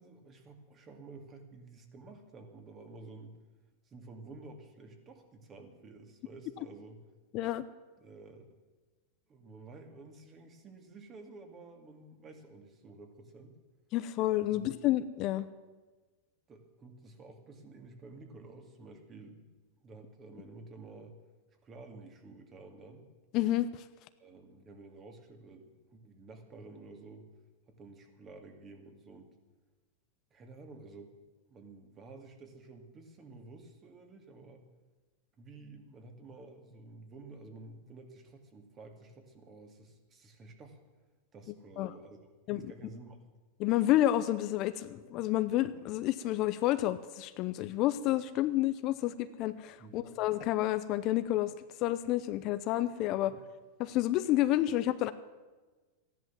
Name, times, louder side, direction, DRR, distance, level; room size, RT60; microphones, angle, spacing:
voice 1, 0.0-3.4 3.9-7.0 8.0-8.5 9.3-13.5 14.5-14.7 16.5-19.4 19.8-21.2 21.6-23.1 24.2-27.3 27.7-29.4 30.3-31.1 31.5-34.6 35.4-40.8 41.3-42.2 42.5-43.2 49.8-50.1 53.3-53.4, right 3 dB, 25° right, 5 dB, 2.3 m, -51 dB
voice 2, 7.3-7.6 13.9-15.5 23.3-23.8 41.8-41.9 42.5-42.6 43.6-51.5 51.8-53.3 53.8-55.1, left 14 dB, 45° left, 12 dB, 0.7 m, -29 dB
14.0 x 11.0 x 7.4 m, 1.3 s
supercardioid pair, 130°, 0 cm